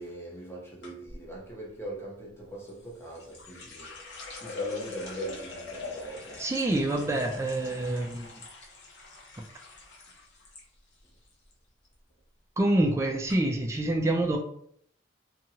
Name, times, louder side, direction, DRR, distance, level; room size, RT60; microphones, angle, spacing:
voice 1, 0.0-6.4, right 1 dB, 15° left, 0.7 m, -41 dB
sound 1, 0.8-1.2 2.7-10.6 10.9-11.5 11.8-12.2 12.9-13.0 13.3-13.4, left 4 dB, 75° left, 0.8 m, -43 dB
voice 2, 6.4-8.3 12.6-14.4, right 1 dB, 15° right, 0.3 m, -26 dB
2.7 x 2.3 x 2.8 m
head